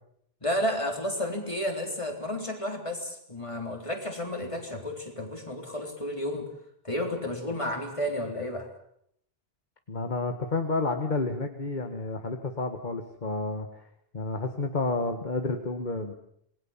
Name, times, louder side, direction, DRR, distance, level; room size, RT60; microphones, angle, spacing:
voice 1, 0.4-6.5 6.8-8.7, left 1 dB, 30° left, 3 dB, 4.0 m, -32 dB
voice 2, 9.9-13.8 14.1-16.1, left 3 dB, 45° left, 6 dB, 1.9 m, -30 dB
27.5 x 21.0 x 7.4 m, 0.71 s
omnidirectional pair, 1.1 m